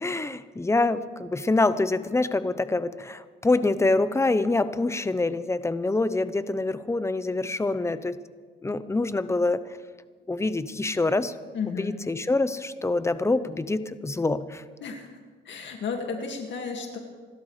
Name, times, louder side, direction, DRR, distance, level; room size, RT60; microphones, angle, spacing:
voice 1, 0.0-8.2 8.6-9.6 10.3-11.3 11.7-14.6, left 2 dB, 15° left, 13 dB, 0.8 m, -25 dB
voice 2, 11.5-11.9 14.8-15.1 15.5-17.0, left 5 dB, 65° left, 2 dB, 2.1 m, -33 dB
28.0 x 12.5 x 3.3 m, 1.5 s
cardioid pair, 90°, 20 cm